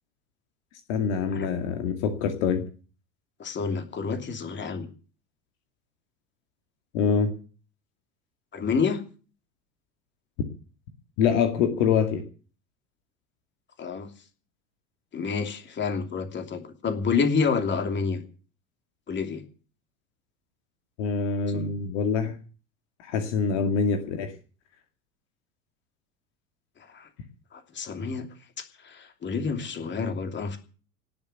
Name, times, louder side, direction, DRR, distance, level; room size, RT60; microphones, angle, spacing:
voice 1, 0.9-2.6 6.9-7.3 11.2-12.2 21.0-22.3 23.0-24.3, left 6 dB, 55° left, 6 dB, 2.2 m, -25 dB
voice 2, 3.4-4.9 8.5-9.0 13.8-14.1 15.1-18.2 19.1-19.4 21.5-21.7 26.9-27.1 27.5-28.2 28.8-30.6, left 5 dB, 25° left, 7 dB, 2.9 m, -28 dB
18.5 x 6.9 x 9.2 m, 0.40 s
figure-of-eight pair, 80°, 44 cm